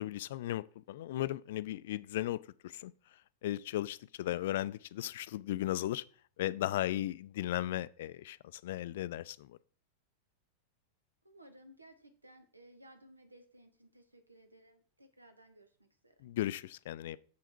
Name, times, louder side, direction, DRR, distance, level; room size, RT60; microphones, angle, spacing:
voice 1, 0.0-2.4 2.6-2.9 3.4-6.0 6.4-9.5 16.2-17.2, left 14 dB, 55° left, 0.3 m, -36 dB
voice 2, 11.2-16.1, right 1 dB, 85° right, 1.2 m, -59 dB
7.0 x 5.5 x 4.5 m
figure-of-eight pair, 90°, 0 cm